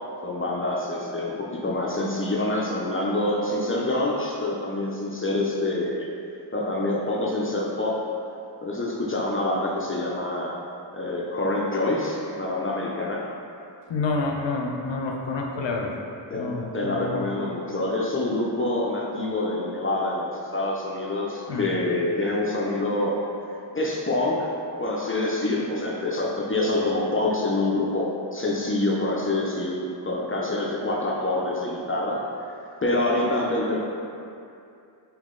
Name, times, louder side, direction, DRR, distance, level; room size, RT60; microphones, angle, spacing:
voice 1, 0.2-6.1 6.5-8.0 8.6-10.6 10.9-13.2 16.3-23.2 23.7-24.5 24.8-32.2 32.8-33.8, left 2 dB, 30° left, -3 dB, 0.4 m, -26 dB
voice 2, 13.9-16.0 16.3-17.2 21.5-21.7, left 3 dB, 80° left, 0 dB, 0.6 m, -28 dB
3.7 x 2.9 x 3.7 m, 2.5 s
wide cardioid pair, 105°, 44 cm